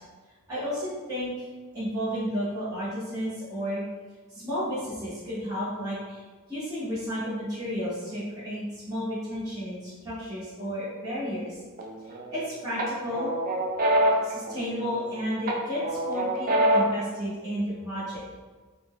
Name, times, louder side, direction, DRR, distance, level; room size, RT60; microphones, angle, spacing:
voice 1, 0.5-1.5 1.7-3.8 4.3-11.6 12.3-13.3 14.2-18.2, equal, 15° right, -13 dB, 0.8 m, -32 dB
sound 1, 11.8-12.4 12.8-15.1 15.5-17.1, right 1 dB, 40° right, 0.4 m, -25 dB
2.5 x 2.1 x 3.5 m, 1.3 s
head